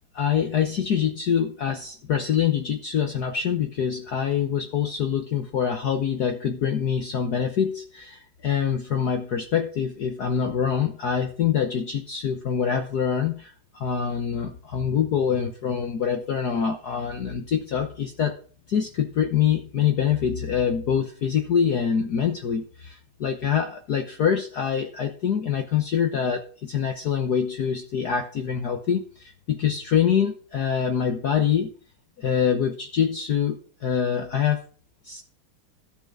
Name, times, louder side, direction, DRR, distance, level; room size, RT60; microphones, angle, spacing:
voice 1, 0.1-18.4 18.7-31.7 32.2-34.6 35.0-35.2, left 8 dB, 55° left, 4 dB, 1.5 m, -25 dB
13.0 x 5.8 x 8.6 m, 0.42 s
omnidirectional pair, 2.4 m